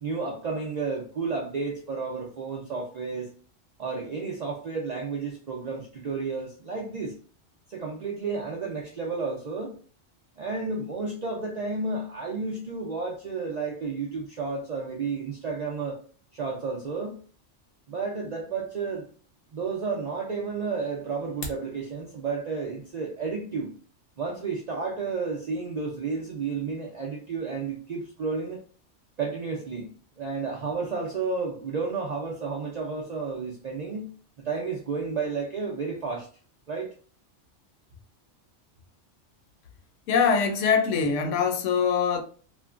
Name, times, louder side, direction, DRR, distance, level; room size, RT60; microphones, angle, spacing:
voice 1, 0.0-3.3 3.8-7.1 7.7-9.7 10.4-16.0 16.3-17.2 17.9-19.1 19.5-23.7 24.2-28.6 29.2-29.9 30.2-34.1 34.4-36.3 36.7-36.9, right 4 dB, 60° right, 0.4 m, -32 dB
sound 1, 21.2-21.7, left 1 dB, 50° left, 0.7 m, -38 dB
voice 2, 40.1-42.2, left 6 dB, 80° left, 0.9 m, -23 dB
3.1 x 2.1 x 2.4 m
omnidirectional pair, 1.2 m